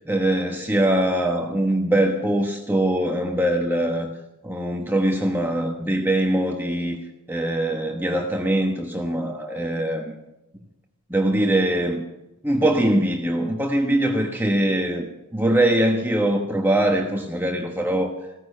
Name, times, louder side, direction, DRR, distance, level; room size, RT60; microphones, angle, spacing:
voice 1, 0.1-4.1 4.4-7.0 7.3-10.1 11.1-12.0 12.4-18.1, right 1 dB, 10° right, 1 dB, 1.2 m, -22 dB
16.5 x 14.5 x 5.6 m, 0.94 s
head